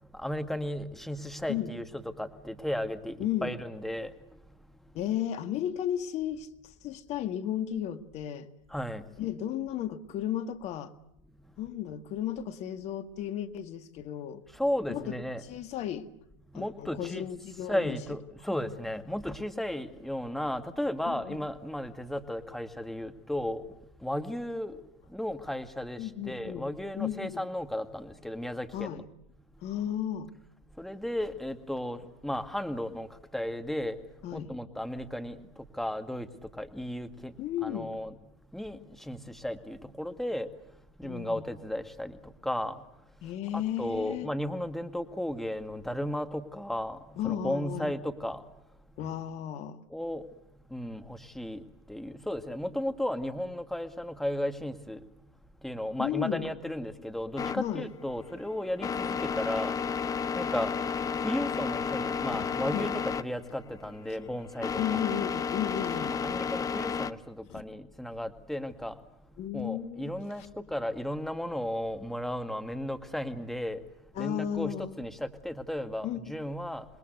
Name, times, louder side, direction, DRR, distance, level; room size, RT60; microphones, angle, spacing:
voice 1, 0.1-4.1 8.7-9.0 14.5-15.4 16.5-17.3 17.7-23.6 24.0-24.8 25.1-29.0 30.8-33.1 33.3-34.0 34.3-35.4 35.8-36.3 36.6-37.3 37.6-38.1 38.5-40.5 41.0-42.7 43.5-47.0 47.2-48.4 49.9-50.2 50.7-51.6 51.9-55.0 55.6-59.7 60.3-60.7 61.2-65.0 66.0-68.9 69.5-73.8 74.2-76.9, left 1 dB, ahead, 2.0 m, -34 dB
voice 2, 3.2-3.5 4.9-8.5 9.2-10.9 11.6-14.4 14.9-16.1 16.5-18.0 21.1-21.4 26.0-26.7 27.0-27.4 28.7-29.0 29.6-30.3 34.2-34.5 37.4-38.0 41.0-41.5 43.2-44.3 47.2-47.9 49.0-49.8 56.0-56.5 57.6-57.9 62.7-62.9 64.8-66.1 67.5-67.6 69.4-70.1 70.4-70.5 74.2-75.0 76.0-76.4, left 10 dB, 45° left, 1.9 m, -34 dB
sound 1, 57.4-67.1, left 6 dB, 20° left, 1.0 m, -32 dB
27.5 x 21.5 x 8.1 m
hypercardioid pair, 95°, 16 cm